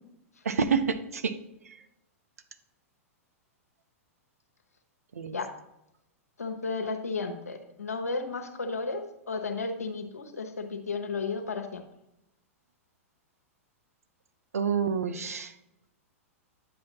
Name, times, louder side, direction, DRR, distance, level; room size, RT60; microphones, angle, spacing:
voice 1, 0.4-1.3 1.7-1.8 5.1-5.4 14.5-15.5, right 6 dB, 80° right, 10 dB, 0.7 m, -28 dB
voice 2, 6.4-11.8, left 4 dB, 85° left, 5 dB, 1.1 m, -33 dB
10.0 x 7.8 x 2.9 m, 0.85 s
hypercardioid pair, 105°, 8 cm